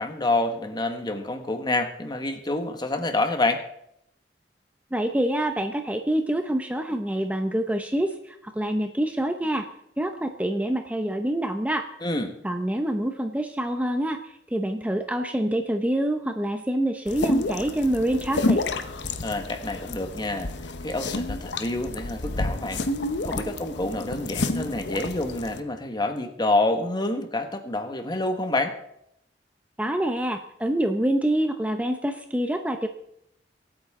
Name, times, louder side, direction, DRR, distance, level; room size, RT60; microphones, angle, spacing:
voice 1, 0.0-3.6 12.0-12.4 19.2-20.5 20.8-22.8 23.2-28.8, left 2 dB, 25° left, 7 dB, 1.4 m, -27 dB
voice 2, 4.9-9.7 10.0-11.9 12.4-18.6 29.8-32.9, right 1 dB, 10° right, 6 dB, 0.7 m, -26 dB
sound 1, 17.1-25.6, left 2 dB, 85° left, 1.0 m, -29 dB
23.0 x 9.0 x 3.7 m, 0.76 s
head